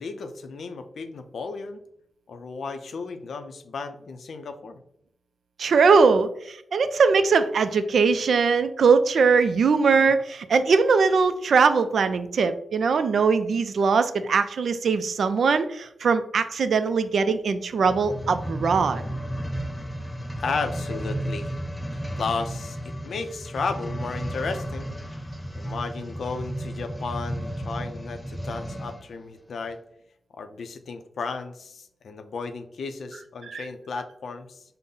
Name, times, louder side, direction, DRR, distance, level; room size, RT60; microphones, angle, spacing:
voice 1, 0.0-1.8 2.3-4.8 9.9-10.1 20.4-21.5 22.2-25.0 25.5-29.8 30.3-34.6, left 4 dB, 75° left, 8 dB, 0.4 m, -34 dB
voice 2, 5.6-19.0 33.5-33.6, right 5 dB, 75° right, 11 dB, 0.3 m, -21 dB
sound 1, 17.7-29.1 29.7-29.8, right 1 dB, 10° left, 0.4 m, -33 dB
5.4 x 2.0 x 3.7 m, 0.73 s
wide cardioid pair, 95°, 0 cm